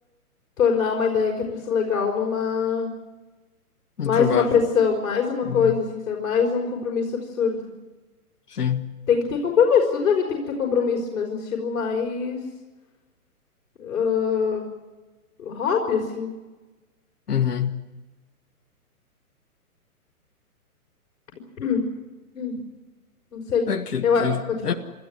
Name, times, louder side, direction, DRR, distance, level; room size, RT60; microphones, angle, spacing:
voice 1, 0.6-2.9 4.1-7.6 9.1-12.4 13.8-14.7 15.4-16.3 21.6-21.9 22.3-22.6 23.3-23.7 24.0-24.8, left 6 dB, 60° left, 1 dB, 5.4 m, -23 dB
voice 2, 4.0-4.5 5.4-5.8 8.5-8.9 17.3-17.8 23.7-24.7, left 8 dB, 80° left, 7 dB, 1.6 m, -26 dB
29.0 x 13.5 x 9.6 m, 1.2 s
hypercardioid pair, 140°, 45 cm